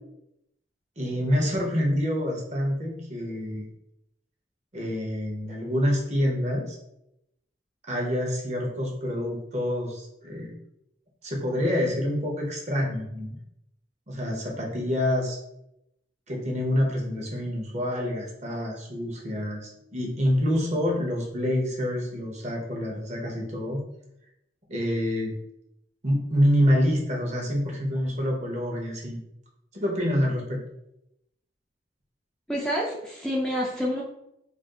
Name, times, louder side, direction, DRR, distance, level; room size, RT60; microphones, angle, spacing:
voice 1, 1.0-3.6 4.7-6.8 7.9-10.5 11.2-13.4 14.1-15.4 16.3-23.8 24.7-25.4 26.0-29.2 29.7-30.6, equal, 40° right, -1 dB, 0.7 m, -27 dB
voice 2, 32.5-34.0, equal, 5° left, -4 dB, 0.3 m, -28 dB
2.5 x 2.3 x 3.6 m, 0.82 s
head